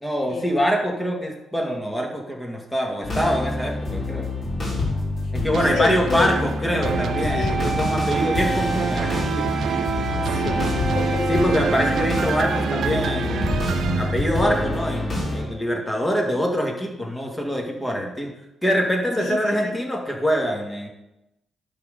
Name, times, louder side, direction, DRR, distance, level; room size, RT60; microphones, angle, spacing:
voice 1, 0.0-4.3 5.3-9.6 11.3-18.3 18.6-20.9, equal, 10° left, 0 dB, 1.9 m, -24 dB
sound 1, 3.0-15.5, left 2 dB, 35° left, 3.4 m, -27 dB
voice 2, 5.5-6.8 7.2-7.6 10.0-11.5 19.2-19.8, left 7 dB, 60° left, 10 dB, 0.4 m, -31 dB
sound 2, 5.5-14.9 15.4-15.5, right 7 dB, 65° right, 0.6 m, -28 dB
Wind instrument woodwind instrument, 6.8-12.7, right 4 dB, 30° right, 1.1 m, -30 dB
11.0 x 3.8 x 6.7 m, 0.94 s
cardioid pair, 90°, 0 cm